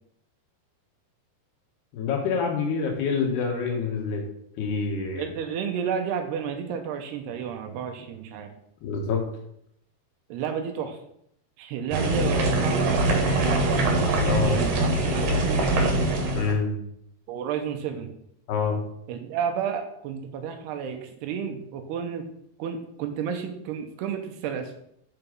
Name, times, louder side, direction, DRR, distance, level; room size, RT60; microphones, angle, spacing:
voice 1, 1.9-4.2 4.6-5.3 8.8-9.2 14.3-14.6 16.3-16.7 18.5-18.8, left 5 dB, 75° left, 1 dB, 3.8 m, -26 dB
voice 2, 5.2-8.5 10.3-11.0 11.6-14.0 14.5-16.0 17.3-18.1 19.1-22.2 22.6-24.7, right 7 dB, 80° right, 5 dB, 2.9 m, -31 dB
sound 1, 11.9-16.5, right 2 dB, 60° right, 3.1 m, -23 dB
9.1 x 6.9 x 5.3 m, 0.73 s
omnidirectional pair, 4.7 m